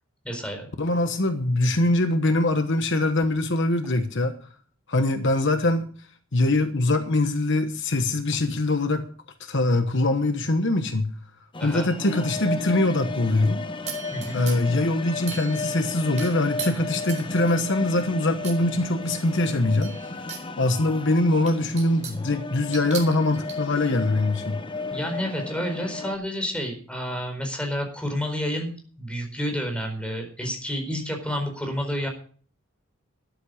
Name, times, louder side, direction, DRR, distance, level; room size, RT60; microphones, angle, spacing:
voice 1, 0.2-0.7 11.6-11.9 14.1-14.4 24.9-28.7 29.0-32.1, equal, 5° left, 4 dB, 4.4 m, -30 dB
voice 2, 0.8-4.3 4.9-5.9 6.3-9.1 9.4-11.1 11.6-13.6 14.3-19.9 20.6-24.6, left 2 dB, 60° left, 8 dB, 1.2 m, -23 dB
sound 1, 11.5-26.2, left 3 dB, 25° left, 0.8 m, -34 dB
sound 2, 13.9-14.8 15.3-15.8 16.2-17.7 18.4-18.6 19.0-20.5 20.9-21.0 21.5-22.3 22.7-23.6, right 6 dB, 35° right, 4.2 m, -38 dB
13.5 x 11.5 x 5.0 m, 0.43 s
head